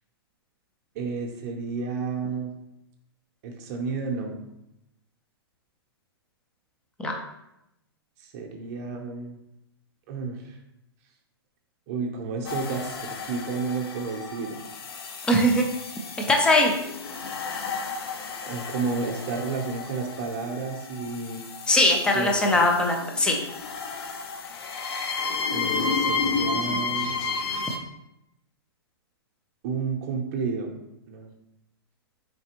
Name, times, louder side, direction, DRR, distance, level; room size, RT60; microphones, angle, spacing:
voice 1, 0.9-2.5 3.4-4.4 8.2-9.4 10.1-10.6 11.9-14.6 18.4-21.4 22.1-22.6 25.5-27.2 29.6-30.7 31.1-31.3, right 4 dB, 40° right, 1 dB, 0.7 m, -31 dB
sound 1, 12.4-27.8, left 4 dB, 70° left, 0.6 m, -32 dB
voice 2, 15.3-15.7 16.3-16.7 21.7-23.4, left 1 dB, 5° left, 2 dB, 0.4 m, -20 dB
4.0 x 3.3 x 2.9 m, 0.86 s
hypercardioid pair, 145°, 13 cm